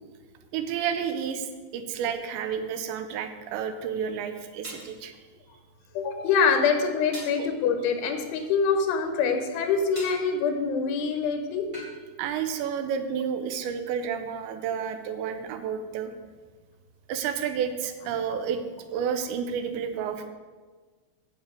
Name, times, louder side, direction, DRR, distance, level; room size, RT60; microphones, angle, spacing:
voice 1, 0.5-5.1 7.4-7.5 12.2-16.1 17.1-18.6 18.9-20.3, right 7 dB, 85° right, 7 dB, 2.9 m, -30 dB
sound 1, 4.6-4.9 7.1-7.4 9.9-10.2 11.7-12.0, equal, 10° right, 2.7 m, -40 dB
voice 2, 6.0-11.9, left 5 dB, 85° left, 5 dB, 3.6 m, -25 dB
10.5 x 5.7 x 8.2 m, 1.4 s
omnidirectional pair, 5.3 m